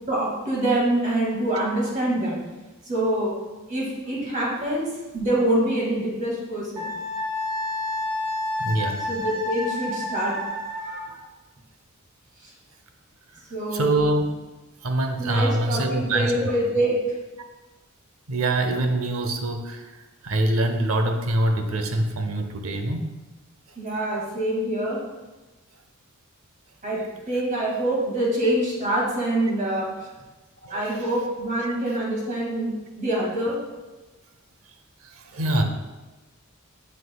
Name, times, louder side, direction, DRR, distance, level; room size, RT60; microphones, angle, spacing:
voice 1, 0.1-2.4 2.9-3.3 3.7-4.9 5.1-6.9 9.1-10.4 13.5-14.0 15.2-17.0 23.8-25.0 26.8-29.9 30.7-32.7 33.0-33.6, right 1 dB, 40° right, -4 dB, 2.1 m, -25 dB
Wind instrument woodwind instrument, 6.8-11.1, left 1 dB, 20° right, 1.8 m, -29 dB
voice 2, 8.6-9.0 11.1-11.2 13.7-14.2 14.8-16.5 18.3-19.9 20.2-23.1 30.6-31.1 35.0-35.6, right 1 dB, 75° right, 6 dB, 0.7 m, -24 dB
7.6 x 6.4 x 2.3 m, 1.2 s
head